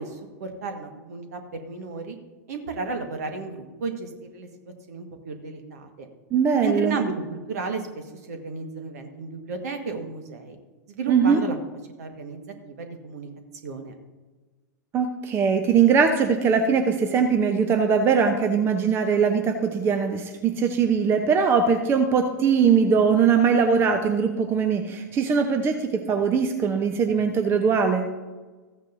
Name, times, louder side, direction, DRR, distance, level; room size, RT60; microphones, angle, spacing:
voice 1, 0.0-2.2 2.5-4.5 4.9-6.1 6.6-7.8 8.3-10.6 10.9-11.6 12.0-13.3 13.6-13.9, right 4 dB, 60° right, 5 dB, 1.6 m, -33 dB
voice 2, 6.3-7.0 11.1-11.4 14.9-28.1, right 6 dB, 25° right, 6 dB, 0.8 m, -21 dB
14.5 x 9.1 x 2.7 m, 1.3 s
figure-of-eight pair, 100°, 10 cm